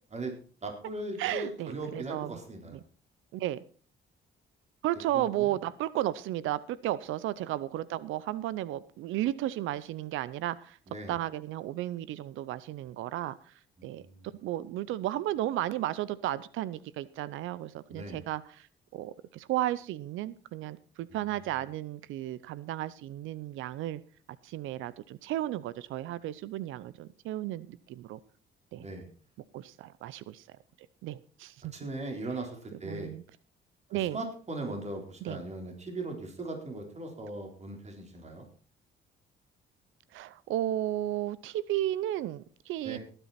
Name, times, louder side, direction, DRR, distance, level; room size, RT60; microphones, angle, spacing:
voice 1, 0.6-2.8 5.1-5.6 10.9-11.2 13.8-14.3 17.9-18.2 21.1-21.6 28.8-29.1 31.7-33.1 33.9-38.5 42.8-43.0, right 2 dB, 35° right, 2 dB, 4.0 m, -39 dB
voice 2, 1.2-2.3 3.3-3.6 4.8-10.8 11.1-13.3 13.8-14.0 14.4-18.7 18.9-24.0 24.4-28.2 28.7-28.9 29.5-30.4 31.0-31.7 32.8-33.2 33.9-34.2 35.2-35.4 40.1-43.0, right 14 dB, 90° right, 18 dB, 0.6 m, -33 dB
18.5 x 9.0 x 4.2 m, 0.41 s
cardioid pair, 90°, 20 cm